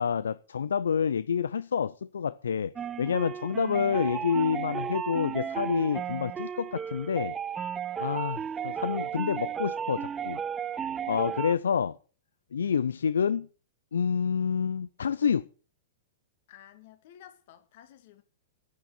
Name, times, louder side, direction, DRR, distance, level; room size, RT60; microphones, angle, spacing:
voice 1, 0.0-2.7 3.0-7.3 8.0-10.4 11.1-12.0 12.5-13.5 13.9-15.4, left 7 dB, 75° left, 0.5 m, -28 dB
sound 1, 2.8-11.6, right 8 dB, 20° right, 0.6 m, -34 dB
voice 2, 16.5-18.2, left 11 dB, 55° left, 2.4 m, -53 dB
9.7 x 9.4 x 7.8 m
figure-of-eight pair, 105°, 0 cm